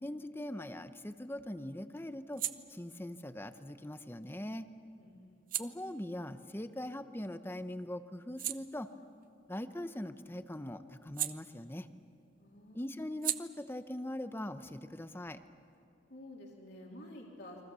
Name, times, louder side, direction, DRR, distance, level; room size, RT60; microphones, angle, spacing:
voice 1, 0.0-2.4 2.7-4.6 5.6-8.9 9.5-11.9 12.7-15.4, left 1 dB, 10° left, 10 dB, 0.7 m, -41 dB
sound 1, 0.6-7.5 7.9-12.1 12.4-15.8, right 12 dB, 45° right, 0.8 m, -44 dB
voice 2, 5.0-5.4 12.4-12.9 16.1-17.6, left 1 dB, 55° left, -2 dB, 3.4 m, -50 dB
29.5 x 23.5 x 6.9 m, 2.7 s
head